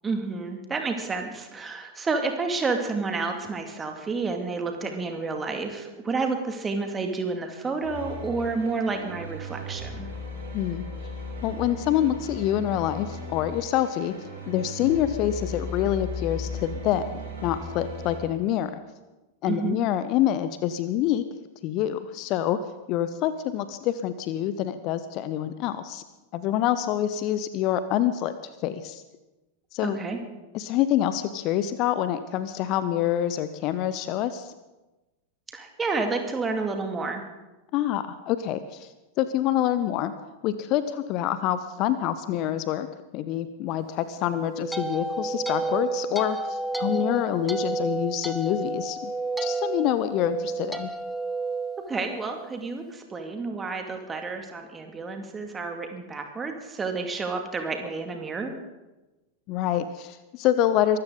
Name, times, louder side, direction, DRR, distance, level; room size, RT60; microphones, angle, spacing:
voice 1, 0.0-10.1 19.4-19.8 29.8-30.2 35.5-37.3 51.9-58.5, right 4 dB, 15° right, 4 dB, 2.3 m, -30 dB
sound 1, 7.8-18.2, left 1 dB, 65° right, 6.3 m, -37 dB
voice 2, 10.5-10.8 11.4-14.1 14.5-18.8 19.4-21.2 21.6-22.6 22.9-26.0 26.3-28.3 28.6-29.0 29.7-30.0 30.5-34.5 37.7-38.9 39.2-40.1 40.4-42.9 43.1-49.1 49.4-50.9 59.5-61.0, left 11 dB, 40° left, 13 dB, 0.7 m, -26 dB
sound 2, 44.2-52.5, right 3 dB, ahead, 1.1 m, -31 dB
23.5 x 13.5 x 3.9 m, 1.1 s
figure-of-eight pair, 90°, 0 cm